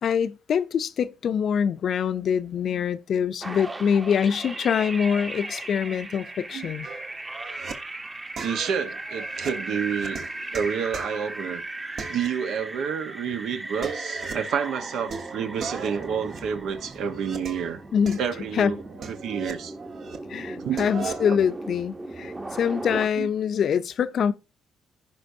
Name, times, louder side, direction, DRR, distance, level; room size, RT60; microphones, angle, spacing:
voice 1, 0.0-6.9 17.9-18.2 18.6-18.8 20.3-24.3, left 7 dB, 60° left, 0.5 m, -24 dB
sound 1, 3.4-23.1, right 2 dB, 20° right, 1.0 m, -37 dB
sound 2, 6.8-7.7 8.4-11.6 12.0-12.9 13.1-13.2 13.6-14.6 15.1-17.7 18.1-20.2 20.5-21.3, right 5 dB, 60° right, 1.3 m, -38 dB
voice 2, 8.4-10.3 10.5-11.6 12.1-17.8 18.2-19.7 20.6-21.1 23.2-23.3, right 7 dB, 75° right, 1.1 m, -29 dB
15.0 x 5.3 x 2.7 m
cardioid pair, 90°, 0 cm